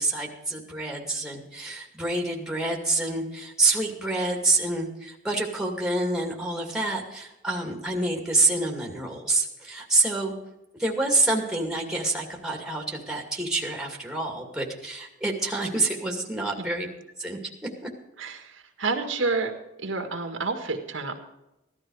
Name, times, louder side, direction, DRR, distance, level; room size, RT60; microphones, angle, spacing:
voice 1, 0.0-10.3 10.8-16.9 17.2-17.5 17.8-17.9, right 2 dB, 5° right, 0 dB, 2.4 m, -27 dB
voice 2, 18.2-19.5 19.8-21.2, right 3 dB, 70° right, 4 dB, 1.9 m, -29 dB
16.0 x 12.5 x 4.8 m, 0.93 s
head